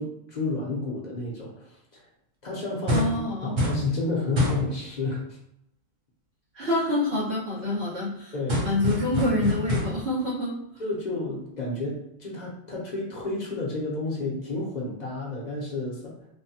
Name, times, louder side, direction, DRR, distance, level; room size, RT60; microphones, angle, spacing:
voice 1, 0.0-2.0 2.4-3.1 3.4-5.4 8.3-8.6 10.8-16.1, left 2 dB, 50° left, -3 dB, 0.7 m, -31 dB
sound 1, 2.9-3.2 3.6-3.9 4.4-4.7 8.5-10.1, equal, 35° right, 0.6 m, -27 dB
voice 2, 2.9-3.6 6.5-8.3 8.6-10.6, left 1 dB, 80° right, -9 dB, 1.8 m, -26 dB
3.3 x 2.1 x 2.7 m, 0.79 s
omnidirectional pair, 1.1 m